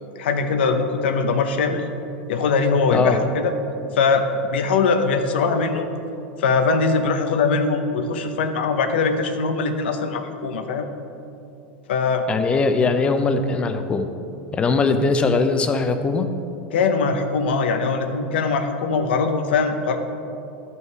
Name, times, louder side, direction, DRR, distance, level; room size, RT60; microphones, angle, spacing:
voice 1, 0.2-1.8 2.3-3.5 3.9-4.2 4.5-5.9 6.4-10.9 11.9-12.2 16.7-20.0, left 4 dB, 85° left, 6 dB, 0.8 m, -21 dB
voice 2, 2.9-3.2 12.3-14.1 14.5-16.3, left 3 dB, 20° left, 8 dB, 0.6 m, -20 dB
12.0 x 5.6 x 4.7 m, 2.8 s
supercardioid pair, 140°, 6 cm